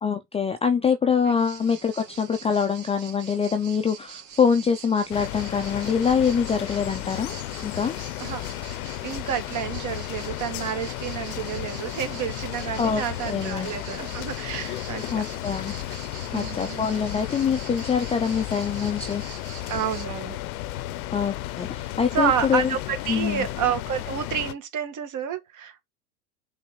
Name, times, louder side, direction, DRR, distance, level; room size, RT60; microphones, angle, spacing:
voice 1, 0.0-7.3 7.6-8.0 12.8-13.7 15.1-15.7 16.3-19.2 21.1-22.8 23.1-23.5, left 6 dB, 15° left, 0.6 m, -24 dB
sound 1, 1.4-20.1, right 8 dB, 60° right, 2.5 m, -44 dB
sound 2, 5.1-24.5, left 15 dB, 65° left, 0.8 m, -34 dB
voice 2, 9.0-15.2 16.3-16.8 19.7-20.4 22.1-25.8, right 8 dB, 40° right, 1.9 m, -29 dB
5.5 x 3.6 x 5.7 m
hypercardioid pair, 90°, 47 cm